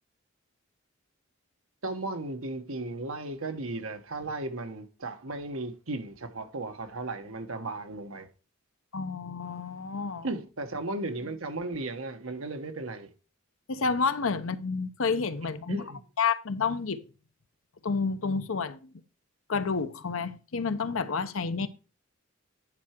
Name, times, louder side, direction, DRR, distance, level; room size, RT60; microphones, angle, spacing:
voice 1, 1.8-8.3 10.2-13.1 15.7-16.0, right 2 dB, 80° right, 1.2 m, -35 dB
voice 2, 8.9-10.3 13.7-15.8 16.2-17.0 17.8-18.8 19.5-21.7, left 5 dB, 80° left, 0.8 m, -29 dB
9.8 x 4.8 x 4.4 m
head